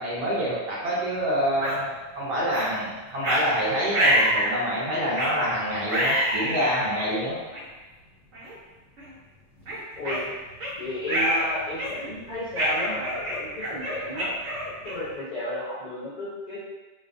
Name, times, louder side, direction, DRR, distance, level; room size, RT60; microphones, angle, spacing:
voice 1, 0.0-1.9 2.1-7.4, equal, 60° right, -7 dB, 0.8 m, -27 dB
sound 1, 1.6-1.8 2.5-2.7 3.2-3.4 3.9-4.5 5.1-5.4 5.9-6.8 7.5-7.6 8.3-8.5 9.0-9.1 9.7-10.7 11.1-11.4 11.8-12.1 12.6-15.1, equal, 85° right, 1.1 m, -26 dB
voice 2, 10.0-10.3 10.8-14.3 14.8-16.6, left 1 dB, 50° left, -11 dB, 0.5 m, -33 dB
2.3 x 2.2 x 2.4 m, 1.2 s
omnidirectional pair, 1.3 m